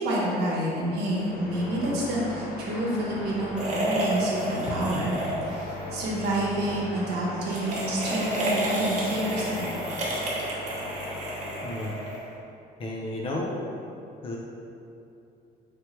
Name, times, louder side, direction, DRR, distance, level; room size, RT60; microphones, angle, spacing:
voice 1, 0.0-5.2 5.4-9.7, right 1 dB, 75° right, -4 dB, 0.9 m, -28 dB
sound 1, 0.9-12.4, left 1 dB, 55° left, 1.1 m, -38 dB
sound 2, 3.6-5.8 6.0-6.3 7.4-12.3, right 1 dB, 45° right, 0.9 m, -30 dB
voice 2, 11.6-11.9 12.8-13.5 14.2-14.4, left 1 dB, 30° left, -2 dB, 0.5 m, -32 dB
3.2 x 2.8 x 4.4 m, 2.7 s
cardioid pair, 110°, 17 cm